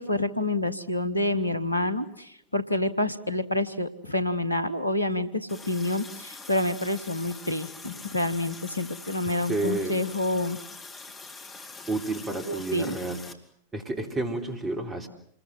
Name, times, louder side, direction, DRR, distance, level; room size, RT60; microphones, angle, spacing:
voice 1, 0.0-10.6 12.5-13.0, left 1 dB, 85° left, 13 dB, 1.2 m, -28 dB
Water tap faucet, 5.5-13.3, left 3 dB, 20° left, 2.8 m, -44 dB
voice 2, 9.5-10.0 11.9-13.2 13.7-15.1, right 2 dB, 20° right, 5 dB, 3.9 m, -30 dB
27.5 x 21.5 x 7.8 m, 0.66 s
figure-of-eight pair, 90°, 0 cm